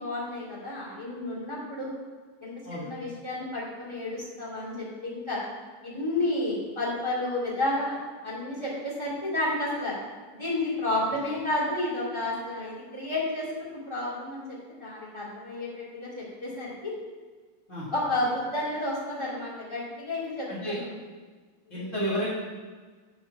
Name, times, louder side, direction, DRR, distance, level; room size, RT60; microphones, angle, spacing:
voice 1, 0.0-1.9 2.4-5.4 5.8-9.9 10.3-16.9 17.9-20.8 21.7-22.0, left 1 dB, 10° left, -8 dB, 2.0 m, -31 dB
voice 2, 21.7-22.3, equal, 55° left, -9 dB, 0.8 m, -31 dB
9.1 x 4.4 x 6.0 m, 1.4 s
omnidirectional pair, 4.3 m